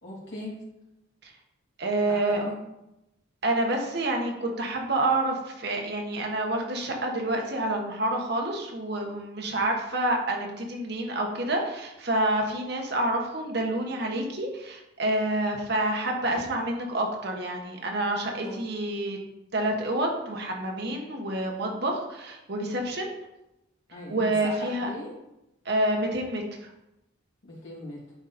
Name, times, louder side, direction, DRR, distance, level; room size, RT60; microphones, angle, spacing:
voice 1, 0.0-0.6 2.1-2.5 18.4-18.6 23.9-25.1 27.4-28.0, left 1 dB, 65° left, -6 dB, 3.1 m, -39 dB
voice 2, 1.8-2.4 3.4-19.2 19.5-23.1 24.1-24.9 25.6-26.4, right 1 dB, 55° right, 1 dB, 1.3 m, -28 dB
11.0 x 4.0 x 4.3 m, 0.90 s
head